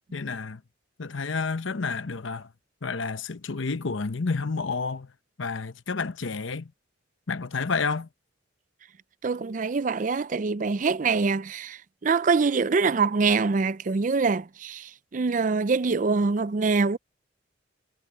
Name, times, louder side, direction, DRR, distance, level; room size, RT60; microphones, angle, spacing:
voice 1, 0.1-0.6 1.0-2.5 2.8-5.1 5.4-6.7 7.3-8.1, left 4 dB, 80° left, 0.9 m, -30 dB
voice 2, 9.2-17.0, right 4 dB, 40° right, 0.4 m, -24 dB
head